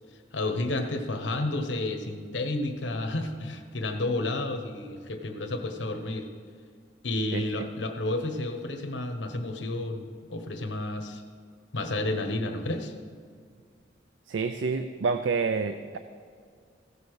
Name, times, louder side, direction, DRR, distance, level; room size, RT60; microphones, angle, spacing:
voice 1, 0.3-6.3 7.0-11.2 11.7-12.9, left 2 dB, 70° left, 6 dB, 1.1 m, -31 dB
voice 2, 7.3-7.7 14.3-16.0, right 4 dB, 85° right, 9 dB, 0.5 m, -28 dB
16.0 x 6.9 x 4.8 m, 2.1 s
head